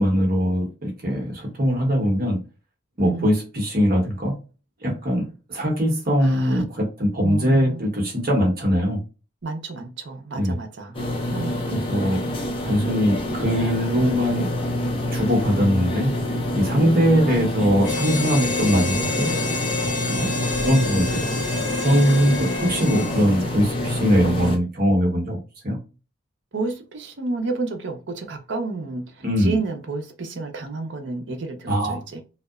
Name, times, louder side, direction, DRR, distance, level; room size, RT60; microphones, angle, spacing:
voice 1, 0.0-2.4 3.0-4.3 4.8-9.0 10.3-10.6 11.7-12.2 12.6-14.5 15.1-16.1 16.5-19.3 20.1-20.3 20.6-21.3 21.8-25.4 25.6-25.8 29.2-29.6 31.7-32.0, equal, 50° right, 0.9 m, -21 dB
voice 2, 6.2-6.6 7.2-7.8 9.4-10.9 11.3-11.7 16.7-17.5 20.1-20.4 22.1-22.5 22.8-23.5 26.5-29.0 29.4-32.2, right 3 dB, 65° right, 0.6 m, -30 dB
sound 1, 10.9-24.6, left 1 dB, 25° left, 0.5 m, -27 dB
Harmonica, 17.8-23.5, left 4 dB, 45° left, 1.5 m, -29 dB
2.7 x 2.1 x 2.2 m
head